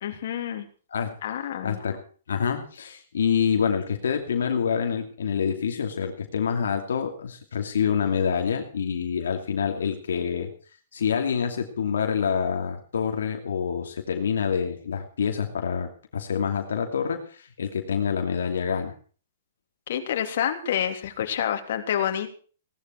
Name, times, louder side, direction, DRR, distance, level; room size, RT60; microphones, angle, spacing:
voice 1, 0.0-0.7 1.2-1.8 19.9-22.3, left 9 dB, 60° left, 5 dB, 3.2 m, -28 dB
voice 2, 1.6-2.0 2.3-10.5 10.9-18.9, left 7 dB, 85° left, 4 dB, 2.7 m, -27 dB
18.0 x 12.5 x 4.6 m, 0.40 s
hypercardioid pair, 150°, 0 cm